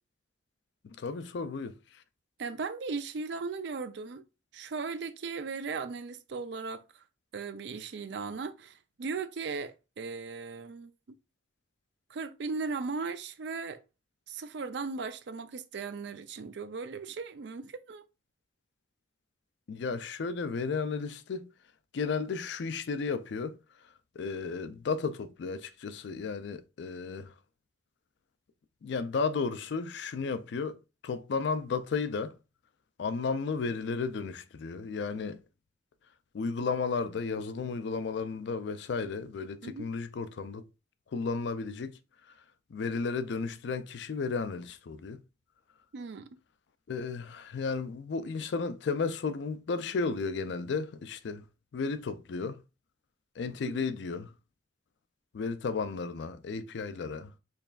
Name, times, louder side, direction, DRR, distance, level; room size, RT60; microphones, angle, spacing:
voice 1, 0.8-1.7 19.7-21.5 21.9-23.6 24.2-27.3 28.8-30.8 31.0-32.4 33.0-35.4 36.3-40.7 41.1-41.9 42.7-45.2 46.9-51.4 51.7-52.6 53.4-54.3 55.3-57.3, left 4 dB, 65° left, 0.4 m, -33 dB
voice 2, 2.4-4.2 4.5-7.0 7.3-10.9 12.1-13.8 14.3-18.0 39.6-39.9 45.9-46.4 53.6-53.7, right 4 dB, 60° right, 0.4 m, -37 dB
4.6 x 3.2 x 2.3 m
head